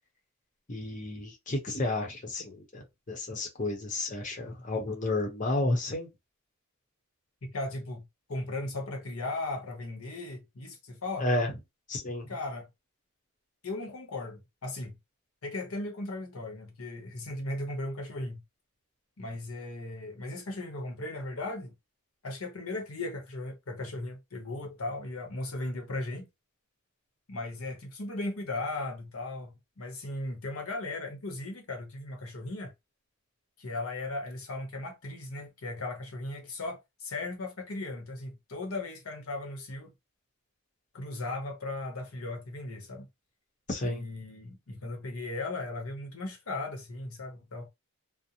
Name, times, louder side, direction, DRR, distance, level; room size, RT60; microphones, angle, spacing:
voice 1, 0.7-6.1 11.2-11.5 11.9-12.3 43.7-44.0, left 2 dB, 35° left, 0.8 m, -31 dB
voice 2, 7.4-11.3 12.3-12.7 13.6-15.0 15.4-18.4 19.2-21.7 22.2-26.3 27.3-32.7 33.6-39.9 40.9-43.1 43.8-47.7, left 2 dB, 90° left, 0.9 m, -37 dB
2.5 x 2.0 x 2.8 m
head